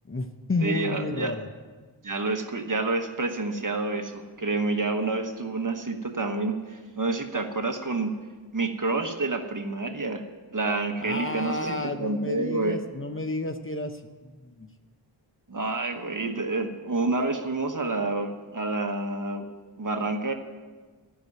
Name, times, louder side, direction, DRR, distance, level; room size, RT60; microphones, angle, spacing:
voice 1, 0.1-1.5 11.0-14.7, left 2 dB, 30° left, 7 dB, 0.7 m, -31 dB
voice 2, 0.6-1.3 2.0-8.1 8.5-10.2 10.5-12.8 15.5-19.5 19.8-20.3, right 3 dB, 45° right, 5 dB, 1.2 m, -28 dB
13.5 x 6.0 x 9.3 m, 1.4 s
wide cardioid pair, 90°, 44 cm